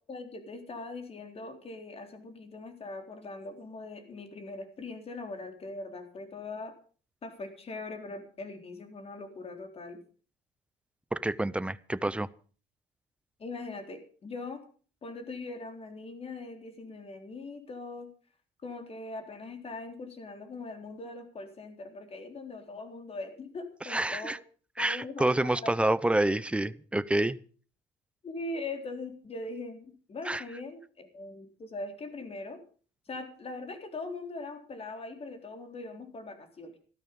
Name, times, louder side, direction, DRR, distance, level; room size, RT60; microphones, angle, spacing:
voice 1, 0.1-6.7 7.2-10.0 13.4-14.6 15.0-18.1 18.6-24.3 24.8-25.9 28.2-32.6 33.1-36.7, left 3 dB, 35° left, 6 dB, 3.9 m, -41 dB
voice 2, 11.1-12.3 23.8-24.4 24.8-27.4 30.2-30.4, right 1 dB, 5° right, 17 dB, 0.7 m, -28 dB
15.0 x 13.0 x 5.3 m, 0.41 s
cardioid pair, 110°, 17 cm